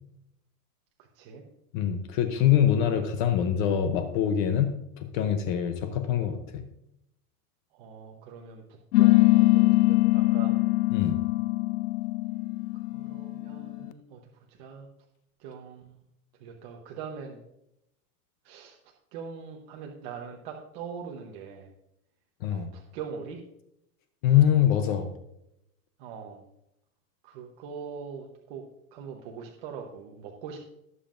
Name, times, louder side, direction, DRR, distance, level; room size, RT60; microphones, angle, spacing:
voice 1, 1.7-6.6 10.9-11.2 22.4-22.7 24.2-25.1, left 10 dB, 35° left, 8 dB, 0.7 m, -24 dB
voice 2, 7.7-10.6 12.9-14.2 14.5-14.9 15.4-16.0 16.3-17.4 18.4-21.7 22.5-23.4 26.0-26.4 27.2-30.6, right 6 dB, 35° right, 1 dB, 1.0 m, -42 dB
sound 1, 8.9-13.9, left 20 dB, 85° left, 0.7 m, -22 dB
19.0 x 7.4 x 2.5 m, 0.81 s
supercardioid pair, 170°, 46 cm